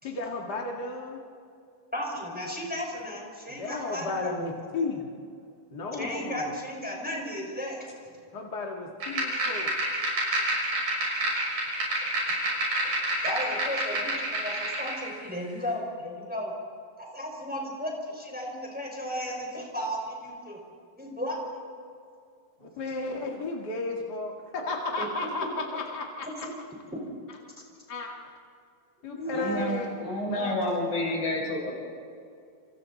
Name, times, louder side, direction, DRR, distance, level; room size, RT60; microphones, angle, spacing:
voice 1, 0.0-1.2 3.6-5.1 5.7-6.5 8.3-9.7 22.6-26.1 27.9-28.1 29.0-29.9 30.3-30.5, left 3 dB, 35° left, -1 dB, 2.0 m, -33 dB
voice 2, 1.9-4.5 5.9-8.2 12.3-12.4 12.8-12.9 13.2-16.5 17.0-20.6 20.9-21.6 25.0-25.1 26.4-26.5 29.1-29.5, equal, ahead, -1 dB, 4.7 m, -35 dB
sound 1, 9.0-15.0, right 1 dB, 65° right, 8.0 m, -29 dB
voice 3, 29.3-31.7, left 1 dB, 75° left, -2 dB, 7.8 m, -29 dB
29.5 x 28.5 x 4.1 m, 2.4 s
omnidirectional pair, 4.1 m